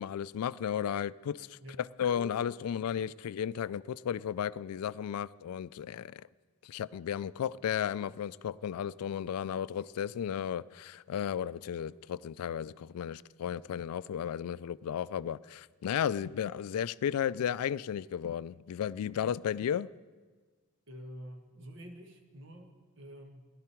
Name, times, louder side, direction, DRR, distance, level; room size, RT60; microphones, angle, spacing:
voice 1, 0.0-6.3 6.6-19.9, left 9 dB, 90° left, 0.3 m, -34 dB
voice 2, 20.9-23.5, equal, 55° right, 1.5 m, -48 dB
17.5 x 11.5 x 4.5 m
head